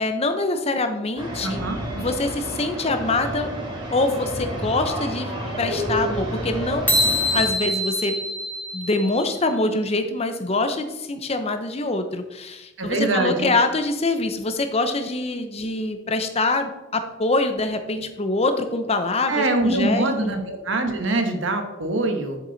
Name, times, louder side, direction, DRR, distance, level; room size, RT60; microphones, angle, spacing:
voice 1, 0.0-1.6 2.0-3.5 3.9-7.1 7.3-8.1 8.7-20.1, left 2 dB, 30° left, 8 dB, 0.7 m, -24 dB
sound 1, 1.2-7.4, right 1 dB, 25° right, 2.2 m, -30 dB
voice 2, 1.4-1.8 12.8-13.5 19.3-22.4, right 2 dB, 75° right, 5 dB, 1.2 m, -23 dB
sound 2, 6.9-9.5, left 1 dB, 10° left, 1.0 m, -24 dB
7.5 x 6.7 x 4.0 m, 1.0 s
head